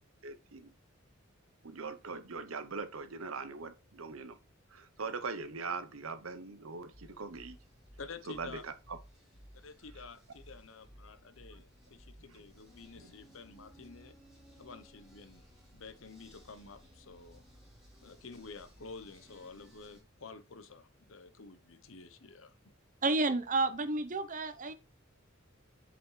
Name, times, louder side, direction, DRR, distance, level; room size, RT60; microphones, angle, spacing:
voice 1, 0.2-0.7 1.6-4.4 4.7-7.6 8.3-9.0 12.3-12.4 12.9-13.1, right 4 dB, 85° right, 0.9 m, -41 dB
sound 1, 6.9-20.0, equal, ahead, 3.3 m, -58 dB
voice 2, 8.0-8.6 9.5-14.1 14.6-15.4 15.7-17.4 18.0-22.7, left 4 dB, 70° left, 0.9 m, -50 dB
voice 3, 23.0-24.7, right 3 dB, 40° right, 0.8 m, -30 dB
7.6 x 5.1 x 3.2 m
head